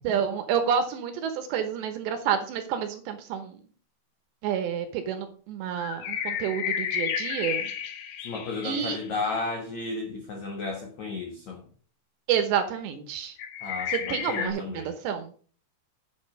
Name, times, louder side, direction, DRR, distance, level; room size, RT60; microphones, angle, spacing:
voice 1, 0.0-3.6 4.4-7.7 8.6-9.0 12.3-13.4 13.9-15.3, right 8 dB, 75° right, 2.8 m, -29 dB
sound 1, 5.8-9.1 13.4-14.5, left 8 dB, 65° left, 3.2 m, -32 dB
voice 2, 8.2-11.6 13.6-14.9, left 3 dB, 80° left, 1.6 m, -33 dB
8.3 x 7.6 x 5.2 m
omnidirectional pair, 5.7 m